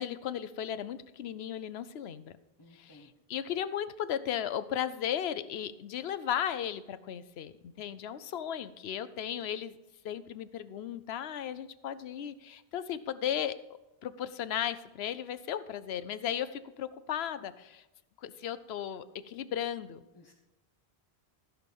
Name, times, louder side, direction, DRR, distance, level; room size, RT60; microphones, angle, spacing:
voice 1, 0.0-2.3 2.7-9.7 10.0-13.6 14.0-17.8 18.2-20.0, left 10 dB, 80° left, 13 dB, 0.9 m, -36 dB
voice 2, 2.6-3.1 20.1-20.3, left 2 dB, 25° left, 0 dB, 1.2 m, -57 dB
14.5 x 6.3 x 5.4 m, 0.99 s
omnidirectional pair, 1.0 m